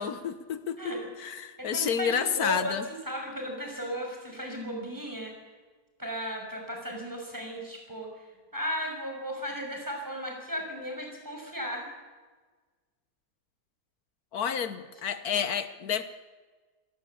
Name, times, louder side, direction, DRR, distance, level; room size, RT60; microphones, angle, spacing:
voice 1, 0.0-0.8 1.2-2.8 14.3-16.0, left 7 dB, 80° left, 12 dB, 1.6 m, -30 dB
voice 2, 0.8-1.1 1.6-2.8 3.0-5.3 6.0-8.2 8.5-11.9 15.3-15.4, equal, 10° right, 1 dB, 6.3 m, -35 dB
28.0 x 18.0 x 8.5 m, 1.4 s
omnidirectional pair, 1.6 m